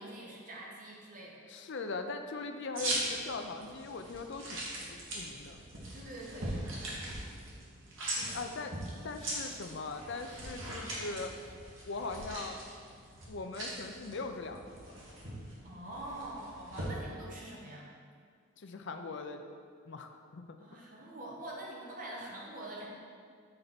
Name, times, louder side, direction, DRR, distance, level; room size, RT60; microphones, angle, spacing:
voice 1, 0.0-1.4 5.9-6.5 8.0-8.4 15.6-17.9 20.6-22.9, right 1 dB, 40° right, -3 dB, 0.9 m, -45 dB
voice 2, 1.5-5.6 8.3-8.7 9.0-11.3 11.9-12.6 13.3-14.9 18.6-19.4 19.9-20.6, left 3 dB, 55° left, 6 dB, 0.4 m, -40 dB
sound 1, 2.8-16.9, right 1 dB, 60° right, 1.4 m, -41 dB
6.6 x 4.4 x 4.0 m, 2.1 s
head